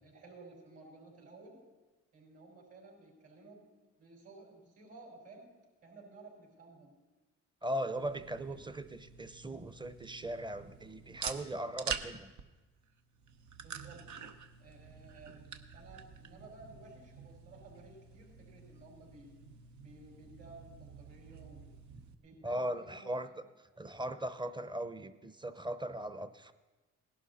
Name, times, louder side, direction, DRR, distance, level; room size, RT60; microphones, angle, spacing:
voice 1, 0.0-1.7 2.1-3.7 4.0-5.5 5.8-6.9 8.4-8.6 13.6-14.1 14.6-19.3 19.8-21.7 22.2-23.5, right 3 dB, 55° right, 0 dB, 5.2 m, -55 dB
voice 2, 7.6-12.3 22.4-23.3 23.8-26.5, right 1 dB, 15° right, 12 dB, 0.8 m, -38 dB
sound 1, 7.9-22.1, right 6 dB, 70° right, 0.9 m, -47 dB
18.0 x 11.5 x 4.2 m, 1.2 s
cardioid pair, 90°, 30 cm